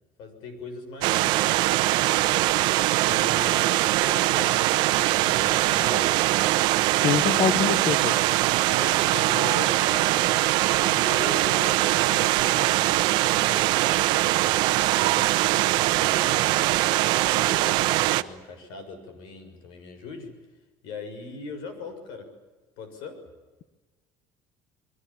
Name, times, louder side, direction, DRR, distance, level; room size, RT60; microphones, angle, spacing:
voice 1, 0.2-1.6 3.1-6.1 8.6-16.4 17.0-20.3 20.8-22.3 22.8-23.2, left 4 dB, 70° left, 9 dB, 6.4 m, -40 dB
sound 1, 1.0-18.2, right 17 dB, 65° right, 1.0 m, -22 dB
voice 2, 7.0-8.2, left 8 dB, 45° left, 10 dB, 1.2 m, -25 dB
30.0 x 22.5 x 7.2 m, 1.2 s
cardioid pair, 175°, 8 cm